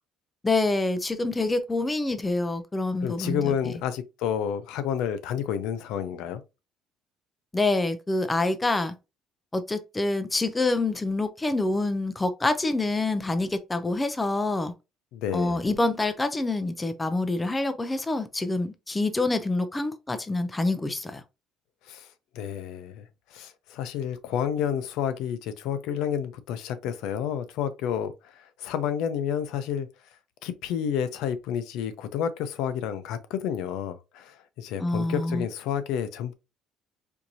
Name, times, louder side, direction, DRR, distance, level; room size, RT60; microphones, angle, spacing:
voice 1, 0.4-3.7 7.5-8.9 9.5-14.7 15.3-21.2 34.8-35.4, left 2 dB, 10° left, 0.4 m, -26 dB
voice 2, 3.0-6.4 15.1-15.7 21.9-22.1 22.3-29.9 30.4-36.3, left 8 dB, 75° left, 0.5 m, -30 dB
4.5 x 2.6 x 2.7 m
cardioid pair, 160°, 0 cm